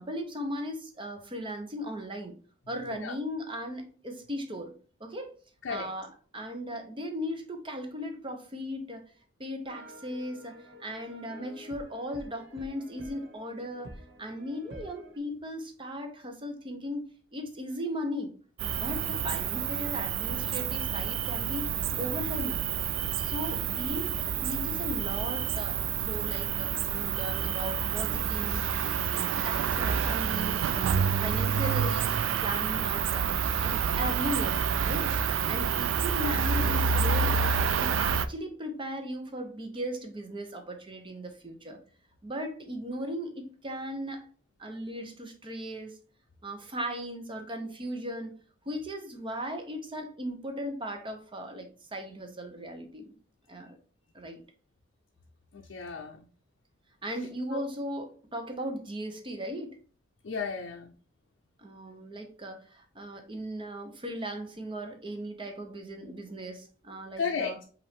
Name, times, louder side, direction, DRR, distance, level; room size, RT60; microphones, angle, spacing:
voice 1, 0.0-2.3 2.7-4.7 5.0-5.3 5.7-9.1 9.4-18.3 18.6-21.7 21.9-22.6 23.2-28.6 29.1-37.4 37.8-41.8 42.2-44.3 44.6-46.0 46.4-48.3 48.7-53.1 53.5-53.8 54.1-54.4 57.0-59.8 61.6-67.6, equal, 25° right, 4 dB, 0.8 m, -37 dB
sound 1, 9.7-15.2, equal, 60° right, 1.4 m, -49 dB
Cricket, 18.6-38.3, right 7 dB, 80° right, 0.3 m, -28 dB
voice 2, 55.5-56.3 57.5-57.6 60.2-60.9 67.2-67.6, left 5 dB, 65° left, 3 dB, 0.5 m, -34 dB
5.4 x 2.6 x 3.5 m, 0.40 s
head